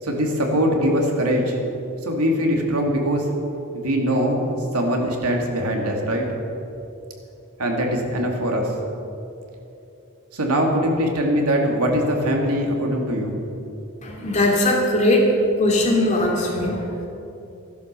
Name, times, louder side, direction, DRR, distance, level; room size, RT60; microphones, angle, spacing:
voice 1, 0.0-1.6 2.0-3.3 3.7-4.4 4.7-6.3 7.6-8.7 10.3-13.4, equal, 90° right, 1 dB, 2.6 m, -22 dB
voice 2, 14.0-15.3 15.5-17.1, left 1 dB, 30° left, -1 dB, 2.7 m, -20 dB
15.0 x 11.5 x 6.8 m, 2.8 s
head